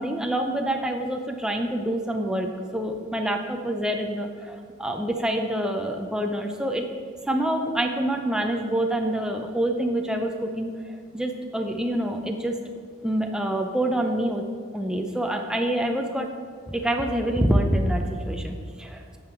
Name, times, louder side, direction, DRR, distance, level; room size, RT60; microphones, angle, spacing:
voice 1, 0.0-6.9 7.3-12.6 13.0-14.5 14.7-16.3 16.7-19.2, right 1 dB, 5° right, 3 dB, 0.5 m, -26 dB
9.3 x 7.0 x 4.4 m, 2.1 s
head